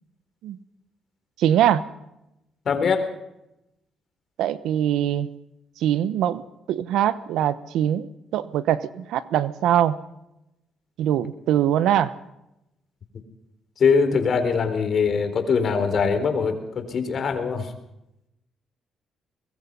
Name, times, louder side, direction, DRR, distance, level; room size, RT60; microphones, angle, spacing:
voice 1, 1.4-1.8 4.4-5.3 5.8-6.4 6.7-10.0 11.0-12.1, right 11 dB, 85° right, 15 dB, 1.0 m, -22 dB
voice 2, 2.7-3.1 13.8-17.7, left 5 dB, 55° left, 7 dB, 4.1 m, -22 dB
24.0 x 20.5 x 5.6 m, 0.88 s
cardioid pair, 90°, 0 cm